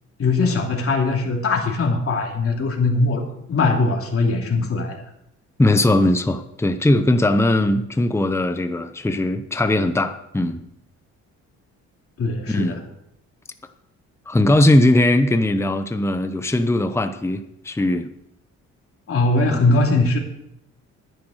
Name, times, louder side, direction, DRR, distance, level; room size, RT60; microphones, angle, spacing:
voice 1, 0.2-3.2 3.5-5.0 12.2-12.8 19.1-20.2, left 3 dB, 50° left, 1 dB, 2.9 m, -20 dB
voice 2, 5.6-10.7 12.5-12.8 14.3-18.1 19.4-19.8, left 1 dB, 10° left, 8 dB, 0.8 m, -19 dB
10.5 x 9.8 x 6.4 m, 0.79 s
cardioid pair, 90°, 30 cm